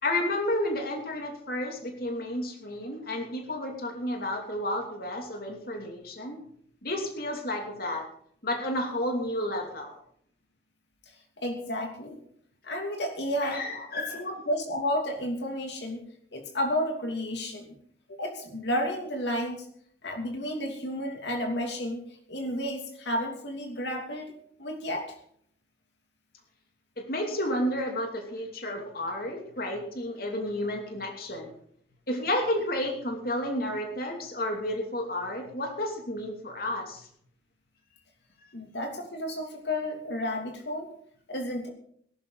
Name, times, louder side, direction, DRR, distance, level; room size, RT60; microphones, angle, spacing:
voice 1, 0.0-6.4 6.8-8.1 8.4-10.0 13.4-14.2 27.0-31.5 32.1-37.1, left 1 dB, 55° left, 2 dB, 2.8 m, -31 dB
voice 2, 11.4-12.2 12.6-13.6 13.9-16.1 16.3-17.8 18.1-19.7 20.0-22.0 22.3-24.3 24.6-25.2 38.5-40.9 41.3-41.7, equal, 70° left, 3 dB, 2.9 m, -32 dB
20.0 x 12.0 x 4.1 m, 0.64 s
head